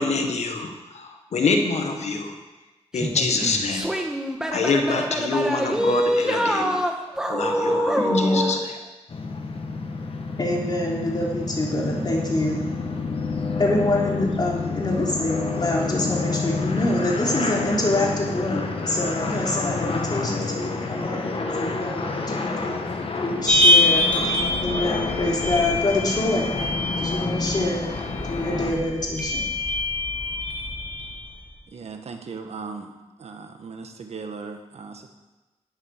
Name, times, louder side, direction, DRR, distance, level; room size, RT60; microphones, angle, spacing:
voice 1, 0.0-2.4 2.9-3.9 4.5-6.8 7.3-8.6, left 3 dB, 75° left, 4 dB, 1.4 m, -25 dB
sound 1, 2.9-8.6, equal, 5° right, 1.5 m, -25 dB
voice 2, 8.0-8.5 10.4-12.6 13.6-22.7 23.2-24.1 24.6-26.5 27.0-27.9 28.3-29.5, left 1 dB, 35° left, -2 dB, 3.5 m, -25 dB
sound 2, 9.1-28.7, left 3 dB, 55° left, 1.6 m, -29 dB
sound 3, 23.5-31.5, left 1 dB, 10° left, 3.0 m, -24 dB
voice 3, 31.7-32.9 33.2-35.1, right 4 dB, 70° right, 5 dB, 1.4 m, -37 dB
10.5 x 8.9 x 6.6 m, 1.1 s
cardioid pair, 75°, 11 cm